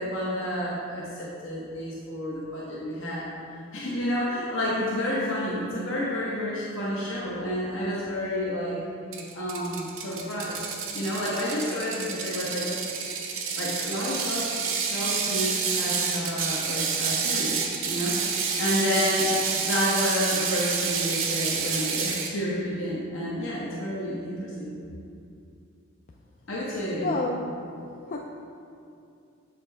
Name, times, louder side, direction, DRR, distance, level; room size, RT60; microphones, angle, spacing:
voice 1, 0.0-3.3 3.7-8.8 9.3-10.6 10.9-12.7 13.6-14.5 14.8-18.2 18.6-24.7 26.5-27.2, equal, 70° left, -7 dB, 0.9 m, -30 dB
Ratchet pawl, 9.1-22.3, right 5 dB, 75° right, 0.7 m, -29 dB
voice 2, 27.0-27.4 28.1-28.2, left 2 dB, 40° left, -1 dB, 0.3 m, -28 dB
7.1 x 5.1 x 3.3 m, 2.5 s
head